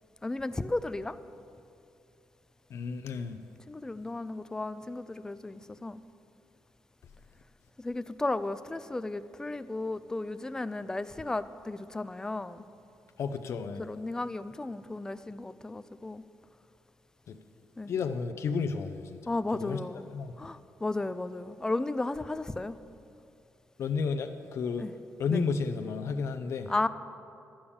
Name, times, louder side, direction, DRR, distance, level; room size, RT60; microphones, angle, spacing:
voice 1, 0.2-1.2 3.7-6.0 7.8-12.6 13.8-16.2 17.8-17.9 19.3-20.1 20.4-22.8 24.8-24.9 25.3-25.4 26.7-26.9, left 2 dB, 10° left, 13 dB, 0.4 m, -34 dB
voice 2, 2.7-3.4 13.2-13.8 17.3-17.4 17.9-19.2 19.5-19.8 20.1-20.3 23.8-24.9 25.2-26.7, left 5 dB, 60° left, 8 dB, 0.6 m, -32 dB
11.5 x 8.7 x 7.1 m, 2.6 s
cardioid pair, 140°, 5 cm